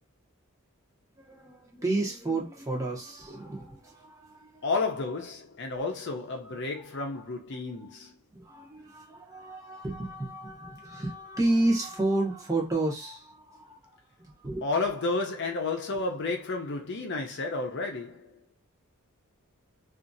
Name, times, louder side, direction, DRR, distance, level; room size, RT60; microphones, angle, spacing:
voice 1, 1.2-4.7 5.7-5.8 7.1-7.2 8.3-13.8 14.2-14.7, right 2 dB, 15° right, 0.8 m, -31 dB
voice 2, 4.6-8.2 14.6-18.4, left 3 dB, 50° left, 0.6 m, -31 dB
2.8 x 2.4 x 2.6 m
head